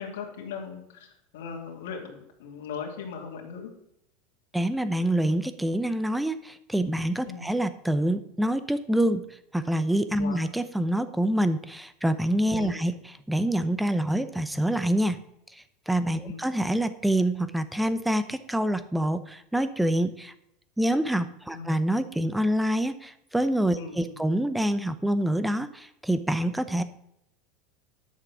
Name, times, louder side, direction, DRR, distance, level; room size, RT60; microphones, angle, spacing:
voice 1, 0.0-3.7 7.3-7.5 10.2-10.4 12.5-12.8 16.2-16.4 21.5-21.8 23.8-24.2, left 6 dB, 85° left, -1 dB, 2.6 m, -38 dB
voice 2, 4.5-9.2 9.5-15.2 15.5-20.3 20.8-26.8, right 1 dB, 5° right, 12 dB, 0.6 m, -26 dB
11.5 x 6.5 x 6.1 m, 0.78 s
supercardioid pair, 160°, 0 cm